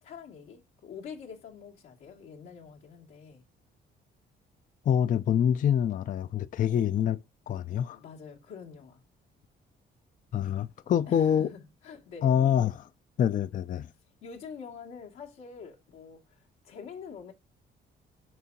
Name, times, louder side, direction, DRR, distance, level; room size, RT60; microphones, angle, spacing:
voice 1, 0.0-3.4 6.7-6.9 7.9-9.0 11.1-12.3 14.2-17.3, left 6 dB, 90° left, 2.2 m, -46 dB
voice 2, 4.9-7.2 7.5-8.0 10.3-11.5 12.2-12.9 13.2-13.9, left 9 dB, 40° left, 0.4 m, -26 dB
11.0 x 3.6 x 2.7 m
cardioid pair, 90°, 20 cm